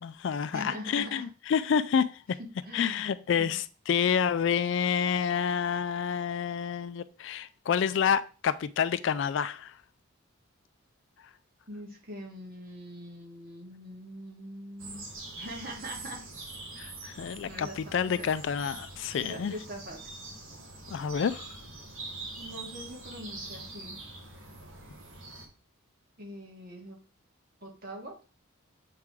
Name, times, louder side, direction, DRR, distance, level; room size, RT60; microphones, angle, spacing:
voice 1, 0.0-2.1 2.7-9.7 16.8-19.5 20.9-21.5, left 7 dB, 60° left, 0.3 m, -28 dB
voice 2, 0.5-1.3 2.7-3.5 11.7-15.0 15.4-16.3 17.4-18.3 19.2-20.1 22.4-24.0 26.2-27.0 27.6-28.1, equal, 45° right, 1.7 m, -43 dB
sound 1, 14.8-25.5, right 2 dB, 75° right, 1.7 m, -44 dB
7.4 x 3.6 x 4.7 m
head